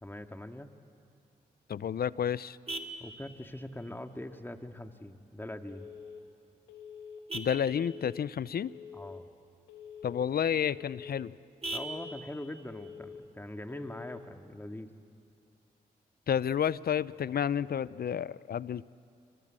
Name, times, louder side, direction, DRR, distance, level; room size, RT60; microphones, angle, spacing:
voice 1, 0.0-0.7 3.0-5.9 8.9-9.3 11.7-14.9, left 1 dB, 10° left, 6 dB, 2.1 m, -42 dB
Vehicle horn car horn honking, 1.4-14.4, right 2 dB, 35° right, 2.6 m, -47 dB
voice 2, 1.7-2.6 7.3-8.7 10.0-11.3 16.3-18.9, left 8 dB, 60° left, 19 dB, 0.6 m, -30 dB
Telephone, 5.7-6.2 6.7-7.2 7.7-8.2 8.7-9.2 9.7-10.2 10.7-11.2 11.7-12.2 12.7-13.2 13.7-14.2, left 7 dB, 85° left, 2.4 m, -47 dB
27.5 x 25.5 x 7.7 m, 2.7 s
supercardioid pair, 40°, 18 cm